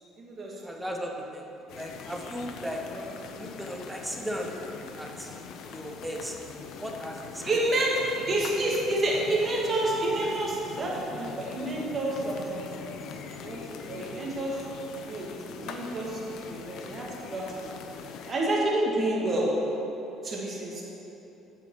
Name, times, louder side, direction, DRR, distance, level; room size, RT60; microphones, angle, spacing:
voice 1, 0.0-0.8 2.9-3.0 7.5-8.0 8.3-12.7 13.4-14.6 15.0-16.2 16.5-19.5 20.2-20.8, right 1 dB, 30° right, -4 dB, 2.0 m, -29 dB
voice 2, 0.6-2.9 3.3-4.7 5.0-5.4 5.7-6.4 6.8-7.8 10.2-10.3 14.0-14.1, equal, 5° right, 1 dB, 0.9 m, -37 dB
sound 1, 1.7-18.3, left 6 dB, 65° left, 0.6 m, -42 dB
7.7 x 7.3 x 5.5 m, 3.0 s
cardioid pair, 125°, 0 cm